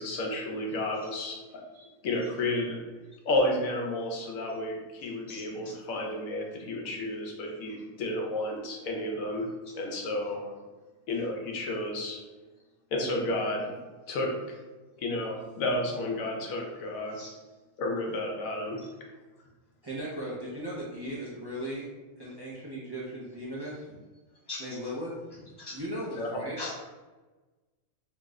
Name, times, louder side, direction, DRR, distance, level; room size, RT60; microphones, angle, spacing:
voice 1, 0.0-1.6 2.0-2.8 3.2-9.5 9.7-10.5 11.1-12.2 12.9-13.7 14.1-14.3 15.0-17.2 17.8-18.8 26.1-26.3, left 1 dB, 80° left, 1 dB, 1.1 m, -31 dB
voice 2, 5.3-5.7 17.1-17.3 24.5-24.7 25.6-25.8 26.6-26.8, left 2 dB, 20° left, -7 dB, 0.8 m, -40 dB
voice 3, 19.8-21.9 22.2-24.0 24.6-26.6, equal, 40° right, -8 dB, 0.3 m, -37 dB
3.0 x 2.0 x 3.5 m, 1.2 s
omnidirectional pair, 1.4 m